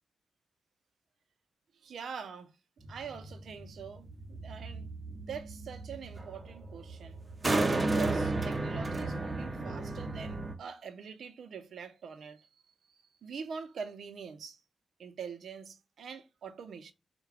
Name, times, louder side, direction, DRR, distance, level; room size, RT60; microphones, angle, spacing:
voice 1, 1.8-2.5 2.9-4.9 5.3-7.2 7.8-12.5 12.9-14.6 15.0-16.9, right 6 dB, 80° right, 0.6 m, -44 dB
sound 1, 2.8-10.6, right 2 dB, 35° right, 0.6 m, -34 dB
4.6 x 2.2 x 3.3 m
cardioid pair, 85°, 0 cm